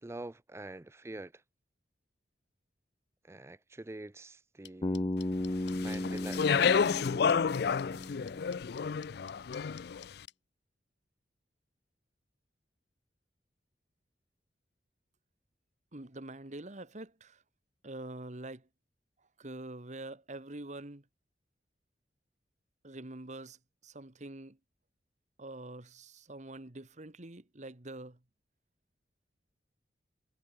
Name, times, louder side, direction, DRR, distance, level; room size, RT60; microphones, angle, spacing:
voice 1, 0.0-1.3 3.3-5.0 5.8-6.7, right 2 dB, 15° right, 0.4 m, -45 dB
sound 1, 4.6-10.3, left 14 dB, 80° left, 2.0 m, -51 dB
Bass guitar, 4.8-8.9, left 1 dB, 25° left, 0.7 m, -36 dB
Speech, 5.7-10.0, left 6 dB, 60° left, 0.4 m, -30 dB
voice 2, 15.9-17.4 17.8-18.7 19.4-21.0 22.8-23.6 23.8-24.6 25.4-28.2, right 2 dB, 40° right, 1.7 m, -45 dB
head